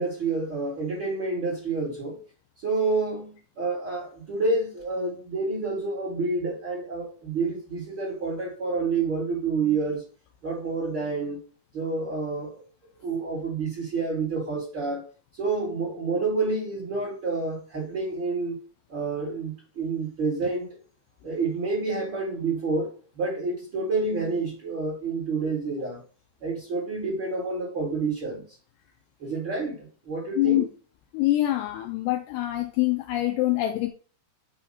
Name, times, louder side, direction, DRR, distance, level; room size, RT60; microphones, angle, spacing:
voice 1, 0.0-2.2 2.6-10.0 10.4-11.4 11.7-12.6 13.0-15.0 15.3-18.6 18.9-20.8 21.2-26.0 26.4-28.4 29.2-30.7, right 3 dB, 35° right, 2.1 m, -28 dB
voice 2, 30.4-30.7 31.1-33.9, left 16 dB, 85° left, 2.5 m, -24 dB
7.1 x 3.0 x 5.5 m
omnidirectional pair, 5.2 m